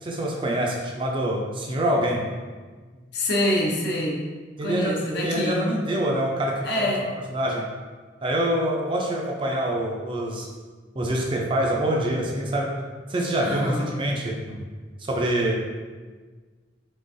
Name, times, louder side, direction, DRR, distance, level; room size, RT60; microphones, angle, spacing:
voice 1, 0.0-2.3 4.6-6.9 7.3-7.7 8.2-10.5 11.0-12.7 13.1-14.6 15.0-15.8, right 1 dB, 25° right, -1 dB, 0.4 m, -25 dB
voice 2, 3.1-4.3 4.6-5.7 6.6-7.0 13.4-13.9, left 1 dB, 55° left, -2 dB, 0.7 m, -26 dB
3.7 x 3.3 x 2.6 m, 1.4 s
head